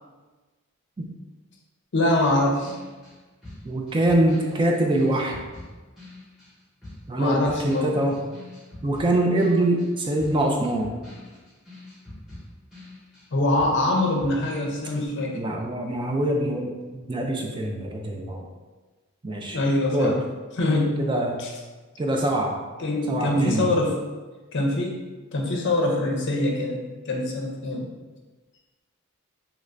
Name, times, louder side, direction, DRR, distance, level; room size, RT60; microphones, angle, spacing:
voice 1, 1.9-2.8 7.2-7.9 13.3-15.3 19.5-20.2 20.6-21.1 21.4-21.5 22.8-24.0 24.5-25.0 25.3-27.9, left 1 dB, 55° left, 0 dB, 0.6 m, -24 dB
sound 1, 2.6-6.5 6.8-13.3 13.6-15.0, left 1 dB, ahead, 1.0 m, -45 dB
voice 2, 3.6-5.4 7.1-8.2 8.8-10.9 15.3-16.7 17.1-18.5 19.2-19.6 19.9-20.2 21.0-21.4 22.0-22.6 23.1-23.7, right 1 dB, 20° right, 1 dB, 0.3 m, -24 dB
3.0 x 2.5 x 3.2 m, 1.3 s
head